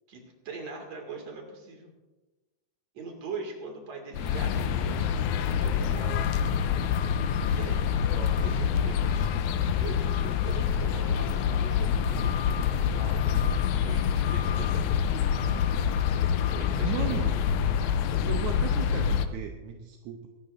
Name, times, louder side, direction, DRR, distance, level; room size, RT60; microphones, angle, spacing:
voice 1, 0.1-1.9 2.9-5.1 5.5-6.2 7.4-8.0 8.4-9.3 9.8-13.2 13.7-15.1 16.6-17.4, right 3 dB, 55° right, 2 dB, 3.3 m, -42 dB
sound 1, 4.1-19.3, left 8 dB, 75° left, 2.0 m, -26 dB
voice 2, 8.1-8.4 16.8-17.8 18.1-20.3, right 10 dB, 75° right, 3 dB, 2.1 m, -37 dB
23.0 x 12.0 x 2.6 m, 1.2 s
omnidirectional pair, 3.7 m